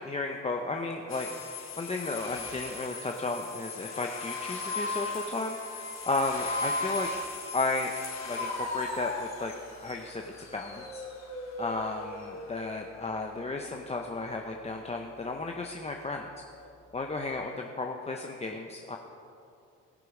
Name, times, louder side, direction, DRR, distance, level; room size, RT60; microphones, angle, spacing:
voice 1, 0.0-7.1 7.5-7.9 8.3-9.5 9.8-11.0 11.6-16.3 16.9-19.0, left 3 dB, 20° left, 2 dB, 0.8 m, -34 dB
sound 1, 1.1-12.8, left 3 dB, 60° left, 2.4 m, -37 dB
18.0 x 6.6 x 4.9 m, 2.6 s
cardioid pair, 90°, 30 cm